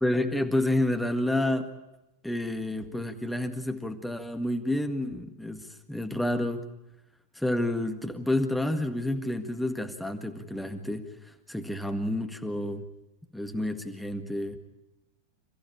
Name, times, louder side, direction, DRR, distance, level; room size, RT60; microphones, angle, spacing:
voice 1, 0.0-1.7 2.2-6.7 7.3-12.8 13.3-14.6, left 1 dB, 5° left, 5 dB, 1.8 m, -29 dB
27.5 x 15.0 x 8.8 m, 0.97 s
figure-of-eight pair, 90°, 0 cm